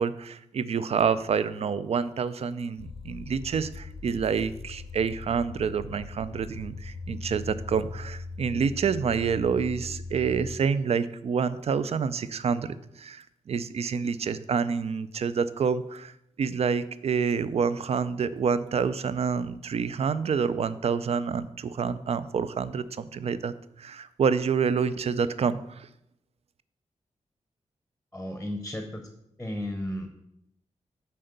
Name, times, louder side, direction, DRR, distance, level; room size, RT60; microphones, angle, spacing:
voice 1, 0.0-16.1 16.4-25.9, right 6 dB, 55° right, 14 dB, 0.4 m, -28 dB
sound 1, 2.8-10.6, left 3 dB, 45° left, 0.5 m, -40 dB
voice 2, 28.1-29.0 29.4-30.1, left 1 dB, 10° left, 6 dB, 0.7 m, -33 dB
7.5 x 4.4 x 6.7 m, 0.79 s
wide cardioid pair, 160°, 12 cm